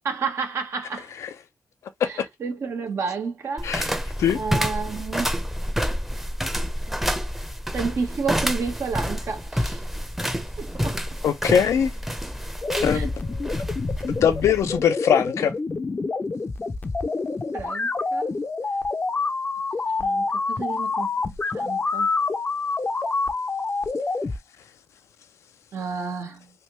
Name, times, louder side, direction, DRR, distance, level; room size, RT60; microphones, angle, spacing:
voice 1, 0.0-1.1 2.0-4.1 4.3-5.3 7.7-9.8 10.6-11.0 12.9-13.1 17.5-18.3 20.0-21.1 21.5-22.1 25.7-26.5, right 5 dB, 70° right, 1.1 m, -31 dB
sound 1, 3.6-14.8, equal, 5° right, 0.7 m, -29 dB
voice 2, 11.2-11.9 12.8-13.4 14.1-15.5, left 8 dB, 80° left, 0.5 m, -21 dB
sound 2, 12.6-24.4, left 3 dB, 35° left, 0.6 m, -27 dB
3.3 x 2.6 x 3.0 m
supercardioid pair, 40°, 5 cm